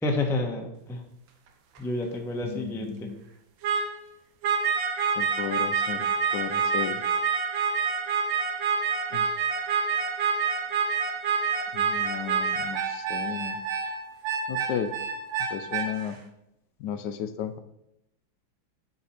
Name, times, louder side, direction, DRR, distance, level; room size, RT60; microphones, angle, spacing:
voice 1, 0.0-1.0 1.8-3.1, left 2 dB, ahead, 2 dB, 0.6 m, -29 dB
sound 1, 1.8-1.9 3.6-4.0 4.4-16.1, right 6 dB, 75° right, 1.6 m, -27 dB
voice 2, 2.4-3.2 5.2-6.1 6.3-7.0 9.1-9.3 11.7-13.6 14.5-14.9 15.5-16.2 16.8-17.6, left 9 dB, 70° left, 10 dB, 1.1 m, -34 dB
9.7 x 4.3 x 5.7 m, 0.83 s
omnidirectional pair, 2.2 m